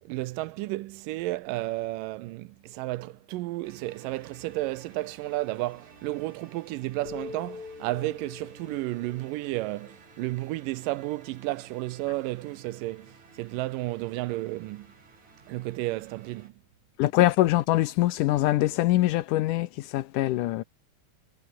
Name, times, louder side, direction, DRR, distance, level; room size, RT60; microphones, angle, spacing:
voice 1, 0.0-14.9 15.5-16.5, right 18 dB, 90° right, 2.4 m, -32 dB
sound 1, 3.6-16.5, right 4 dB, 60° right, 6.4 m, -54 dB
sound 2, 7.1-10.6, left 4 dB, 40° left, 4.6 m, -44 dB
voice 2, 17.0-20.6, left 16 dB, 80° left, 2.2 m, -23 dB
omnidirectional pair, 3.8 m